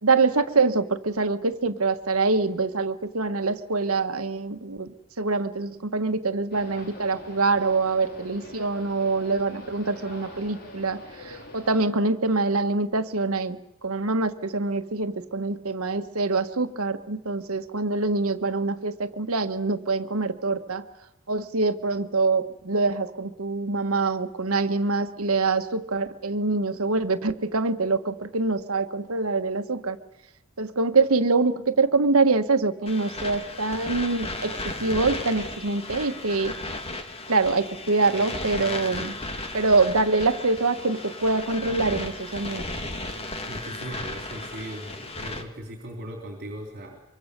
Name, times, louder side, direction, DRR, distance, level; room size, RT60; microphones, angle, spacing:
voice 1, 0.0-20.8 21.3-30.0 30.6-36.5 37.3-39.2 39.5-42.6, right 3 dB, 85° right, 9 dB, 1.4 m, -25 dB
sound 1, 6.5-11.9, left 1 dB, 50° left, 4.1 m, -44 dB
sound 2, 32.9-45.4, left 2 dB, 30° left, 2.4 m, -35 dB
voice 2, 43.5-47.0, equal, 50° right, 3 dB, 3.6 m, -38 dB
24.5 x 24.5 x 6.7 m, 0.94 s
head